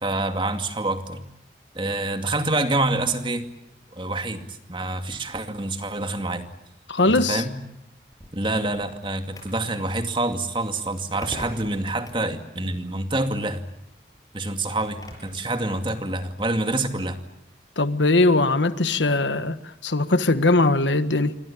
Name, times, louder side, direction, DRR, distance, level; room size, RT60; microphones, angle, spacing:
voice 1, 0.0-1.2 1.7-3.5 3.9-6.5 7.0-7.6 8.3-13.6 14.3-17.2, right 2 dB, 25° right, 2.4 m, -27 dB
voice 2, 6.9-7.4 17.8-21.4, left 2 dB, 85° left, 1.5 m, -20 dB
sound 1, 8.1-15.4, left 1 dB, 20° left, 6.9 m, -44 dB
28.0 x 24.5 x 8.6 m
head